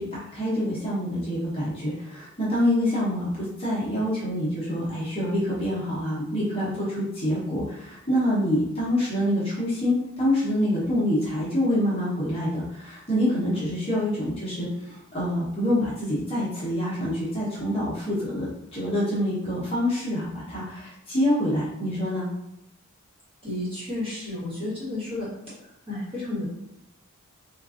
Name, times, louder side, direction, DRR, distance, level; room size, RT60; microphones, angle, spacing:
voice 1, 0.0-22.3, left 1 dB, 25° left, -8 dB, 1.0 m, -26 dB
voice 2, 23.4-25.3 25.9-26.5, left 2 dB, 25° right, -9 dB, 1.4 m, -31 dB
3.7 x 2.5 x 2.5 m, 0.86 s
head